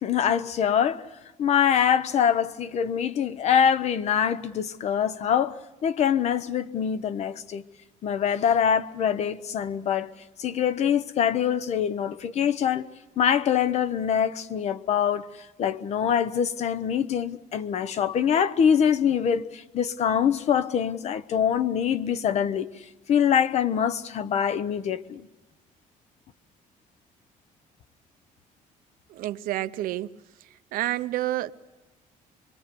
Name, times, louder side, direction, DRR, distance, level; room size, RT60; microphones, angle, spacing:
voice 1, 0.0-1.0 1.4-7.6 8.0-10.1 10.4-22.7 23.1-25.3, left 8 dB, 50° left, 0.9 m, -24 dB
voice 2, 29.1-30.2 30.7-31.5, right 15 dB, 80° right, 0.8 m, -29 dB
24.5 x 23.5 x 6.9 m
cardioid pair, 165°, 15 cm